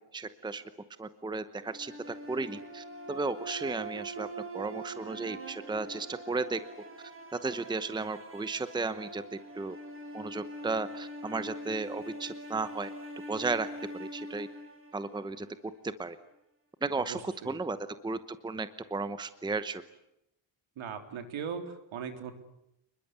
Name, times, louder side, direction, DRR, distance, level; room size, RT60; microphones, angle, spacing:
voice 1, 0.1-0.6 1.0-4.3 4.5-6.6 7.4-9.2 9.5-9.8 10.1-12.9 13.3-13.7 14.0-14.5 14.9-15.5 16.0-16.2 16.8-17.8 18.0-19.8, right 3 dB, 10° right, 12 dB, 1.0 m, -34 dB
sound 1, 1.6-15.7, right 1 dB, 25° right, 4.2 m, -44 dB
voice 2, 16.9-17.5 20.8-22.3, right 7 dB, 70° right, 7 dB, 3.8 m, -39 dB
29.0 x 21.5 x 8.2 m, 0.82 s
wide cardioid pair, 180°, 49 cm